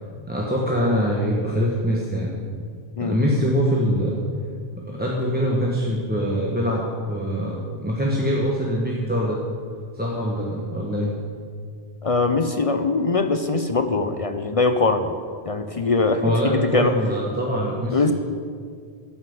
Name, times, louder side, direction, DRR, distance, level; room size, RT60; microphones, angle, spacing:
voice 1, 0.3-2.4 3.0-4.2 4.8-9.4 9.9-11.1 16.2-18.1, equal, 10° right, -4 dB, 1.1 m, -23 dB
voice 2, 12.0-15.1 15.5-17.0 17.9-18.1, left 3 dB, 40° left, 8 dB, 0.5 m, -22 dB
13.0 x 5.8 x 7.8 m, 2.1 s
omnidirectional pair, 1.2 m